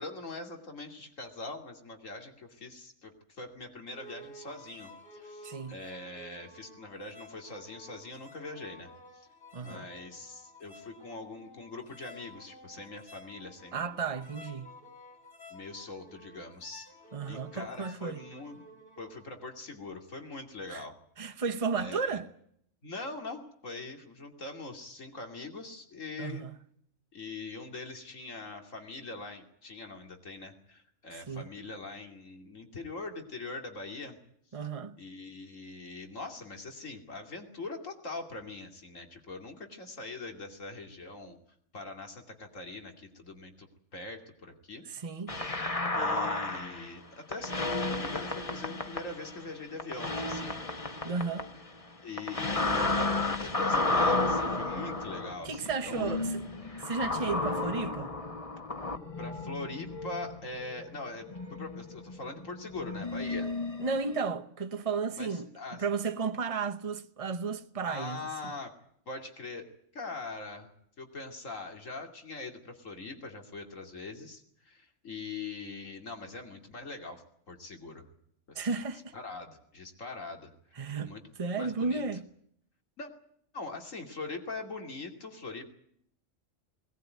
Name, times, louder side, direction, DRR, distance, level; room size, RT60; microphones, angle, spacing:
voice 1, 0.0-9.3 9.6-14.0 15.5-16.9 17.3-18.6 19.0-21.0 21.7-22.2 22.8-26.4 27.1-34.2 35.0-41.4 41.7-44.8 45.9-47.6 47.8-50.6 50.8-51.1 52.0-56.2 59.2-63.5 65.1-65.8 67.8-68.7 69.1-70.7 71.0-78.1 78.5-78.8 79.1-80.5 80.8-81.2 81.6-82.0 83.0-83.1 83.5-85.6, left 3 dB, 85° left, 3.1 m, -42 dB
sound 1, 3.9-19.3, left 1 dB, 45° left, 3.8 m, -53 dB
voice 2, 5.4-5.7 9.5-9.9 13.7-14.7 17.1-18.2 20.7-20.9 21.2-22.3 26.2-26.5 31.1-31.5 34.5-35.0 44.9-45.4 51.0-51.5 55.4-56.4 56.8-58.1 63.8-68.2 78.5-79.1 80.7-81.1 81.4-82.2, right 5 dB, 30° right, 1.1 m, -33 dB
sound 2, 45.3-47.0 47.3-49.5 49.8-51.8 52.2-64.2, left 2 dB, 30° left, 1.4 m, -33 dB
20.5 x 18.5 x 9.3 m
omnidirectional pair, 1.3 m